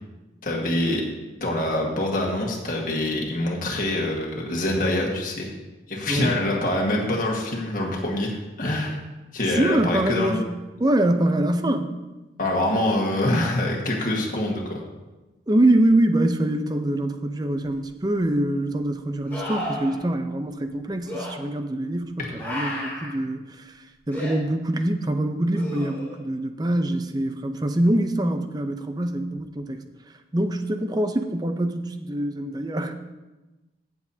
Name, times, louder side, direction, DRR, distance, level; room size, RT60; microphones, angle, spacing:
voice 1, 0.4-1.0 1.4-5.5 5.9-9.0 9.3-10.4 12.4-14.8 22.2-22.3, left 1 dB, 45° left, -2 dB, 1.6 m, -25 dB
voice 2, 6.1-6.4 9.5-10.5 10.8-11.9 15.5-29.8 30.3-32.9, right 1 dB, 20° right, 7 dB, 0.5 m, -24 dB
sound 1, 17.7-17.8 19.3-20.0 21.1-21.3 22.4-23.1 24.1-24.4 25.5-26.2 29.4-29.5, left 1 dB, 10° left, 2.5 m, -33 dB
15.5 x 7.1 x 2.8 m, 1.1 s
head